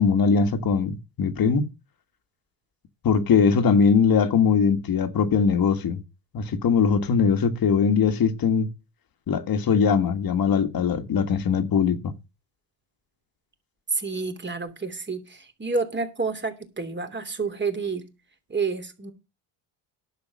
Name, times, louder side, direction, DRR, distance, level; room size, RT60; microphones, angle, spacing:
voice 1, 0.0-1.7 3.0-6.0 6.3-8.7 9.3-12.1, left 6 dB, 50° left, 1.7 m, -21 dB
voice 2, 13.9-18.1 18.5-19.1, right 4 dB, 25° right, 3.0 m, -29 dB
11.0 x 6.9 x 6.3 m
cardioid pair, 95°, 45 cm